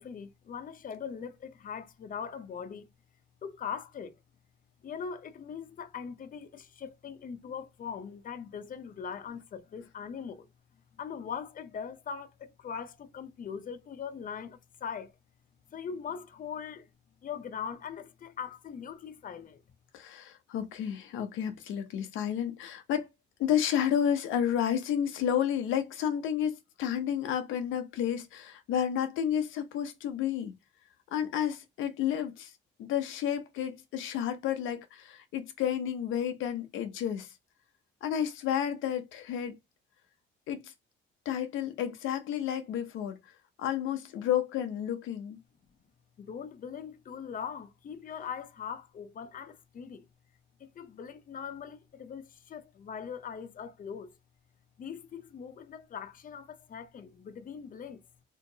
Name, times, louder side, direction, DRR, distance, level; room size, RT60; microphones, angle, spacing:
voice 1, 0.0-2.9 3.4-4.1 4.8-10.5 11.0-15.1 15.7-16.9 17.2-19.6 46.2-50.1 50.6-54.1 54.8-58.0, left 7 dB, 45° left, 0.6 m, -41 dB
voice 2, 19.9-23.1 23.4-30.5 31.1-32.5 32.8-37.3 38.0-39.6 40.5-40.7 41.3-43.3 43.6-45.4, left 9 dB, 90° left, 0.6 m, -31 dB
3.7 x 2.6 x 2.6 m
cardioid pair, 90°, 20 cm